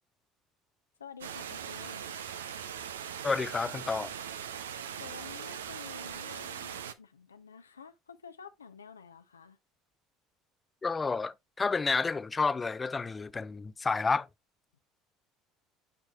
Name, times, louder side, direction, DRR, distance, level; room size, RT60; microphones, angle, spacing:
voice 1, 1.0-2.1 5.0-9.6, left 6 dB, 90° left, 0.7 m, -50 dB
sound 1, 1.2-6.9, right 8 dB, 80° right, 0.6 m, -40 dB
voice 2, 3.2-4.2 10.8-14.3, left 4 dB, 25° left, 0.4 m, -30 dB
10.5 x 4.7 x 2.4 m
hypercardioid pair, 65°, 0 cm